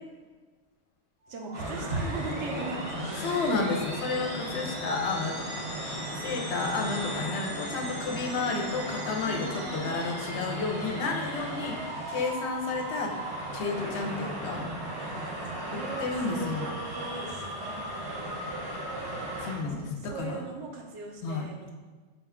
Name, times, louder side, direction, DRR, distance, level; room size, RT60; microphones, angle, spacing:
sound 1, 1.2-12.9, right 1 dB, 45° right, 0.3 m, -45 dB
voice 1, 1.3-3.6 6.1-6.2 9.2-10.0 15.5-18.3 19.5-21.7, right 3 dB, 75° right, 2 dB, 0.9 m, -39 dB
sound 2, 1.5-19.5, right 1 dB, 25° right, 0.7 m, -36 dB
voice 2, 3.2-5.6 6.2-11.8 12.1-13.1 13.5-14.7 15.7-16.7 19.4-20.4 21.2-21.5, left 4 dB, 70° left, 2 dB, 0.8 m, -31 dB
4.2 x 2.2 x 3.5 m, 1.4 s
omnidirectional pair, 1.3 m